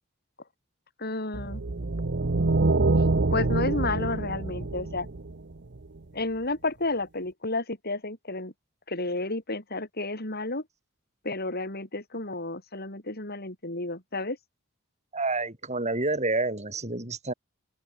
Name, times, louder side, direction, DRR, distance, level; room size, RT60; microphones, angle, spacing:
voice 1, 1.0-1.6 3.3-5.1 6.1-8.5 8.9-10.6 11.2-14.4, left 2 dB, 50° left, 7.5 m, -31 dB
sound 1, 1.3-5.8, right 3 dB, 55° right, 0.9 m, -26 dB
voice 2, 15.1-17.3, right 3 dB, 35° right, 7.8 m, -28 dB
open air
head